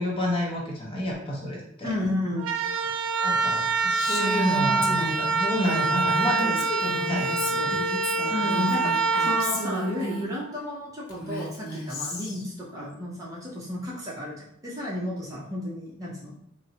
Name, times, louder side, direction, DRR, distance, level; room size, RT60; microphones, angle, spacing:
voice 1, 0.0-1.9 3.2-8.2, left 1 dB, 25° left, -3 dB, 0.6 m, -30 dB
voice 2, 1.8-2.5 8.3-16.3, left 1 dB, 15° right, -5 dB, 0.6 m, -32 dB
sound 1, 2.4-10.5, right 4 dB, 80° right, 0.3 m, -26 dB
Female speech woman speaking, 3.9-10.3 11.1-12.5, left 1 dB, 90° left, 0.7 m, -33 dB
3.8 x 2.0 x 2.7 m, 0.73 s
head